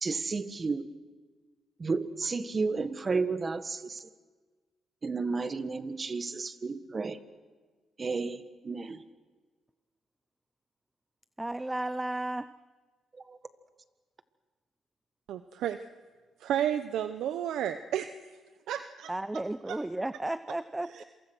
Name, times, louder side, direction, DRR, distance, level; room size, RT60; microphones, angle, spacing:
voice 1, 0.0-0.9 1.8-4.1 5.0-7.2 8.0-9.0 13.3-13.4, right 4 dB, 30° right, 1.4 m, -32 dB
voice 2, 11.4-12.5 19.1-21.0, right 1 dB, 10° right, 0.6 m, -33 dB
voice 3, 15.3-15.8 16.4-18.1 18.7-19.8 20.9-21.0, right 10 dB, 80° right, 0.9 m, -32 dB
27.0 x 24.0 x 6.2 m
cardioid pair, 90°, 0 cm